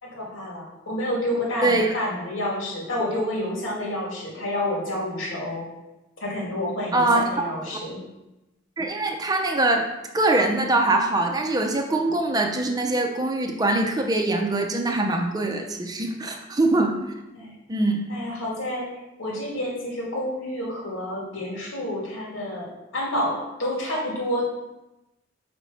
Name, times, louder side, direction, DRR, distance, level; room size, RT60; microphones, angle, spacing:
voice 1, 0.0-5.7 6.2-8.0 17.4-17.5 18.1-24.5, left 1 dB, 85° left, -3 dB, 2.5 m, -29 dB
voice 2, 1.6-1.9 6.9-7.5 8.8-9.9 10.1-17.1 17.7-18.0, right 2 dB, 20° right, 3 dB, 0.6 m, -23 dB
5.0 x 4.7 x 5.7 m, 0.98 s
head